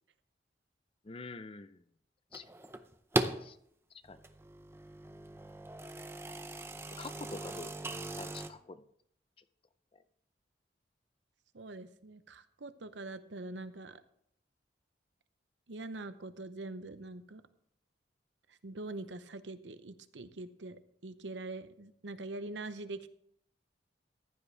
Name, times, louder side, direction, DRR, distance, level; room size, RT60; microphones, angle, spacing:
voice 1, 1.0-1.8 2.3-2.5 3.4-3.6 4.1-4.2 7.0-7.8 8.2-8.8, left 3 dB, 30° left, 12 dB, 0.5 m, -46 dB
sound 1, 2.3-3.5 4.0-8.5, right 2 dB, 15° right, 0.6 m, -38 dB
voice 2, 11.5-14.0 15.7-17.4 18.5-23.1, right 2 dB, 80° right, 12 dB, 0.8 m, -44 dB
15.0 x 10.5 x 3.4 m, 0.68 s
head